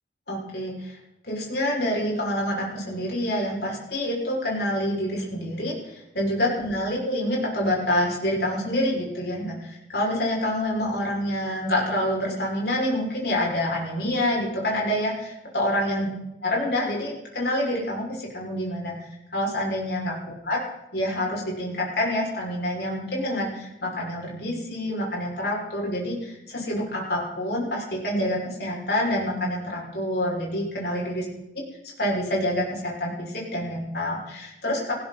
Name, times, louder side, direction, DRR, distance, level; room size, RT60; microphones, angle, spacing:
voice 1, 0.3-0.9 1.2-16.1 16.4-18.9 19.3-20.1 20.4-20.6 20.9-31.2 32.0-34.9, left 1 dB, 60° left, -3 dB, 6.5 m, -27 dB
19.5 x 16.0 x 4.4 m, 0.90 s
head